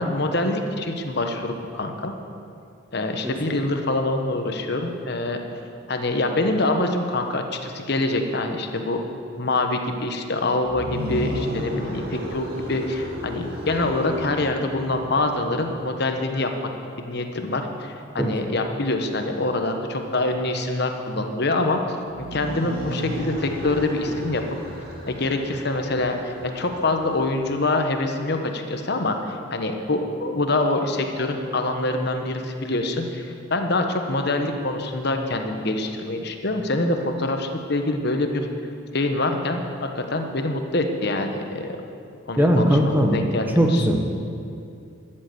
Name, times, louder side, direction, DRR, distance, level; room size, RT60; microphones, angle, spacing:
voice 1, 0.0-2.1 2.9-5.4 5.9-9.0 9.4-16.5 17.0-21.8 22.2-24.4 25.1-38.5 38.9-41.7 42.3-43.9, left 2 dB, 55° left, 5 dB, 1.1 m, -25 dB
sound 1, 10.7-15.8 22.1-27.7, equal, 50° right, 2.2 m, -34 dB
voice 2, 42.4-43.2 43.6-44.0, equal, 10° right, 2 dB, 1.0 m, -18 dB
13.0 x 7.7 x 7.9 m, 2.5 s
head